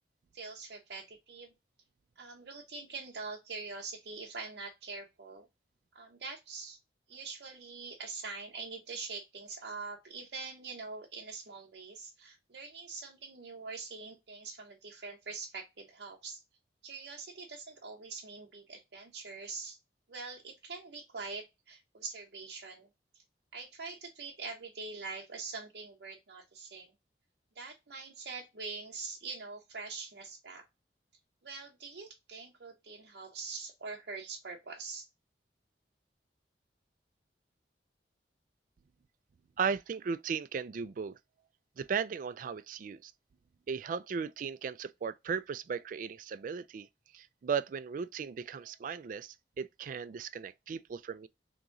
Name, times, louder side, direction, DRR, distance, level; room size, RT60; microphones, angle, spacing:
voice 1, 0.3-1.5 2.2-5.5 5.9-6.8 7.1-16.4 16.8-19.8 20.1-22.9 23.1-23.2 23.5-26.9 27.5-30.6 31.4-35.1, right 4 dB, 65° right, 0.7 m, -44 dB
voice 2, 39.6-41.2 41.8-43.1 43.7-46.9 47.1-51.3, right 6 dB, 50° right, 0.3 m, -36 dB
3.8 x 3.0 x 3.6 m
head